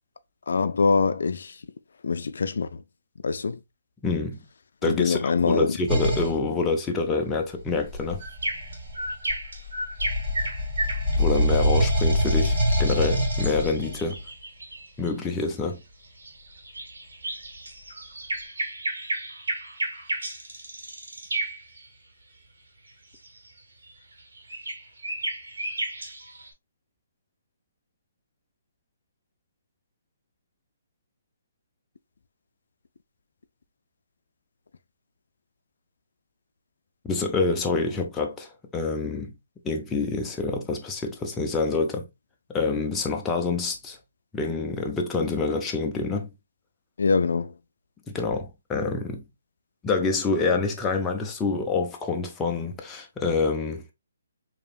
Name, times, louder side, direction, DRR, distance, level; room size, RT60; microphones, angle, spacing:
voice 1, 0.5-1.6 2.0-2.8 3.2-3.6 4.8-5.8 47.0-47.5, left 4 dB, 70° left, 0.4 m, -24 dB
voice 2, 4.0-4.4 4.8-8.2 11.2-14.2 15.0-15.8 37.0-39.3 39.6-42.1 42.5-44.0 44.3-46.3 48.1-49.2 49.8-53.9, left 4 dB, 10° left, 0.5 m, -27 dB
sound 1, 5.9-6.4 7.7-9.6 10.0-14.1, equal, 15° right, 2.2 m, -24 dB
sound 2, 8.2-15.1 16.0-21.9 22.9-26.5, right 2 dB, 80° right, 1.8 m, -34 dB
4.7 x 2.9 x 2.3 m
hypercardioid pair, 160°, 0 cm